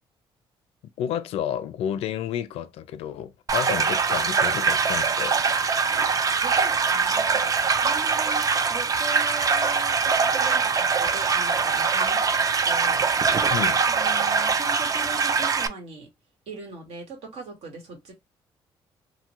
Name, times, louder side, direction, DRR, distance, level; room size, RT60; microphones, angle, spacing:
voice 1, 1.0-5.4 13.5-13.8, left 10 dB, 80° left, 0.4 m, -30 dB
sound 1, 3.5-15.7, right 5 dB, 35° right, 0.4 m, -23 dB
voice 2, 6.4-7.5 7.8-12.4 12.6-13.5 13.9-16.1 16.5-18.1, right 3 dB, 75° right, 1.4 m, -40 dB
2.9 x 2.3 x 2.9 m
cardioid pair, 95°, 10 cm